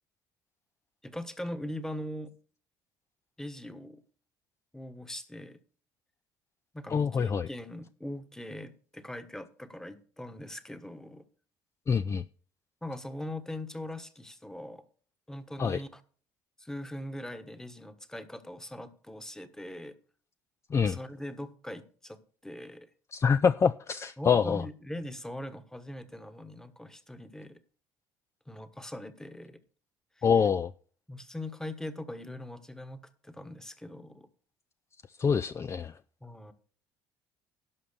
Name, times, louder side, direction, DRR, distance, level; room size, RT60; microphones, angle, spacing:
voice 1, 1.0-2.3 3.4-4.0 4.7-5.6 6.7-11.2 12.8-14.8 15.3-16.0 16.6-20.0 20.8-22.9 24.2-27.6 28.5-29.6 30.2-30.3 31.1-34.3 36.2-36.5, left 1 dB, 5° left, 1.3 m, -41 dB
voice 2, 6.9-7.5 11.9-12.2 15.6-15.8 20.7-21.0 23.1-24.6 30.2-30.7 35.2-35.9, left 6 dB, 30° left, 0.4 m, -25 dB
11.5 x 5.7 x 6.8 m
supercardioid pair, 80°, 9 cm